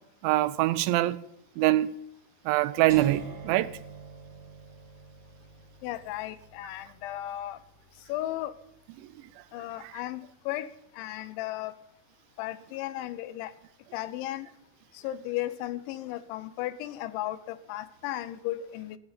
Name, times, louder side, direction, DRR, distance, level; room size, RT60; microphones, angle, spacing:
voice 1, 0.2-1.2 1.6-1.9 2.5-3.7, right 16 dB, 85° right, 3.0 m, -24 dB
sound 1, 2.9-8.8, right 6 dB, 40° right, 4.8 m, -46 dB
voice 2, 5.8-7.6 8.1-8.5 9.5-11.7 12.4-13.5 13.9-14.5 14.9-19.0, left 14 dB, 85° left, 3.2 m, -35 dB
19.0 x 13.5 x 4.1 m
omnidirectional pair, 5.2 m